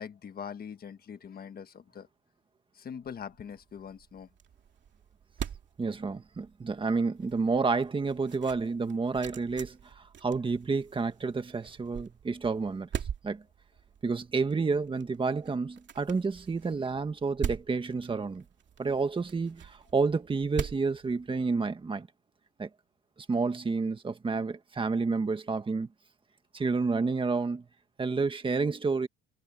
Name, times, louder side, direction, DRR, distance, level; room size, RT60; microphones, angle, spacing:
voice 1, 0.0-2.1 2.7-4.3, left 7 dB, 30° left, 1.5 m, -42 dB
sound 1, 3.1-21.8, right 8 dB, 35° right, 2.5 m, -43 dB
voice 2, 5.8-12.9 13.2-13.4 14.0-18.4 18.8-22.1 22.6-22.7 23.3-25.9 26.5-27.6 28.0-29.1, right 4 dB, 15° right, 1.6 m, -30 dB
cardioid pair, 150°, 31 cm